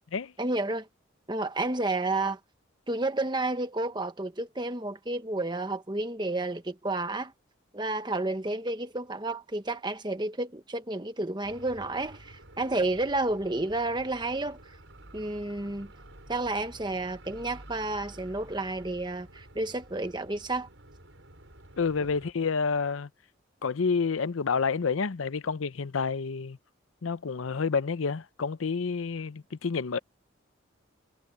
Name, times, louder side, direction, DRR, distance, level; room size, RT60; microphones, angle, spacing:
voice 1, 0.4-0.9 1.3-2.4 2.9-7.3 7.7-14.6 15.1-15.9 16.3-20.7, right 2 dB, 20° right, 1.2 m, -31 dB
sound 1, 11.4-22.3, right 1 dB, 70° right, 6.0 m, -51 dB
voice 2, 21.8-23.1 23.6-26.6 27.0-30.0, left 5 dB, 85° left, 0.6 m, -29 dB
head